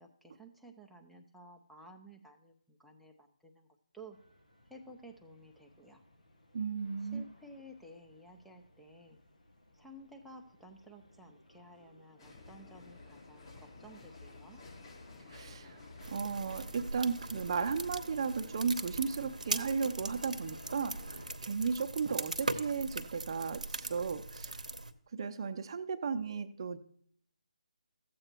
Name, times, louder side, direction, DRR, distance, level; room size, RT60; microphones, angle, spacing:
voice 1, 0.0-3.7 3.9-4.2 4.7-6.0 7.1-9.2 9.7-14.6, right 1 dB, ahead, 0 dB, 0.6 m, -54 dB
sound 1, 4.1-21.3, left 1 dB, 80° left, 1.9 m, -58 dB
voice 2, 6.5-7.2 15.3-24.6 25.1-26.8, right 5 dB, 40° right, 8 dB, 0.7 m, -35 dB
sound 2, 12.2-17.9, left 3 dB, 40° left, 1.8 m, -53 dB
sound 3, 16.0-24.9, right 2 dB, 80° right, 0.8 m, -40 dB
14.0 x 7.7 x 3.0 m, 0.63 s
figure-of-eight pair, 150°, 4 cm